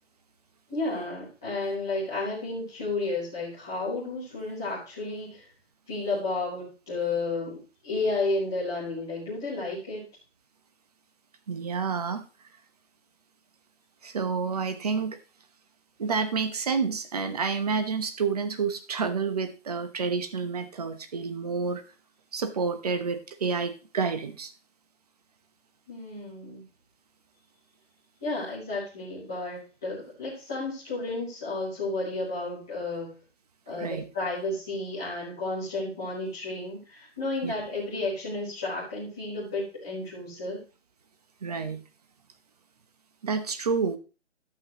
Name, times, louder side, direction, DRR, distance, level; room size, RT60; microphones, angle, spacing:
voice 1, 0.7-5.4 5.9-10.0 25.9-26.6 28.2-33.2 33.7-40.6, left 2 dB, 5° left, -10 dB, 0.6 m, -32 dB
voice 2, 11.5-12.2 14.0-15.2 16.0-21.8 22.3-24.5 33.8-34.0 37.4-37.5 41.4-41.8 43.2-44.0, right 5 dB, 30° right, 10 dB, 0.9 m, -29 dB
12.0 x 8.0 x 2.9 m, 0.33 s
hypercardioid pair, 170°, 37 cm